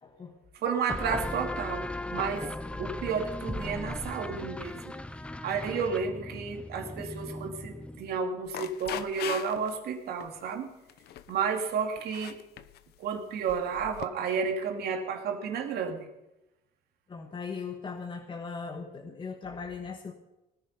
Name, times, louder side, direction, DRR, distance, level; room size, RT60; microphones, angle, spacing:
voice 1, 0.0-0.4 17.1-20.1, left 5 dB, 30° left, 3 dB, 1.5 m, -39 dB
voice 2, 0.6-2.5 2.8-5.0 5.4-10.7 11.3-12.4 13.0-16.1, right 6 dB, 70° right, 3 dB, 2.7 m, -32 dB
sound 1, 0.9-8.2, left 1 dB, 5° left, 0.6 m, -37 dB
sound 2, 8.5-9.8 10.2-10.5 10.9-11.4 12.0-12.8 13.5-14.1, left 12 dB, 75° left, 0.9 m, -40 dB
18.5 x 10.0 x 5.4 m, 0.95 s
cardioid pair, 110°, 17 cm